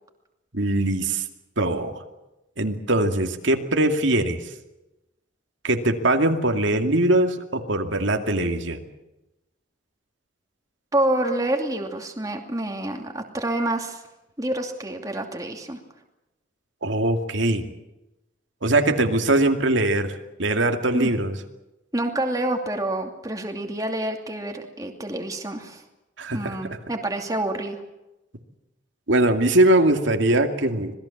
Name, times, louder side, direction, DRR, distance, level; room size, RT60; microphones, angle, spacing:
voice 1, 0.5-1.2 1.6-2.0 2.6-4.4 5.6-8.8 16.8-17.6 18.6-20.1 20.4-21.4 26.2-26.5 29.1-30.9, right 1 dB, 75° right, 5 dB, 2.4 m, -21 dB
voice 2, 10.9-14.0 14.4-15.8 20.9-21.1 21.9-25.8 26.3-27.8, right 1 dB, 20° right, 3 dB, 2.6 m, -27 dB
26.5 x 20.0 x 7.3 m, 0.97 s
head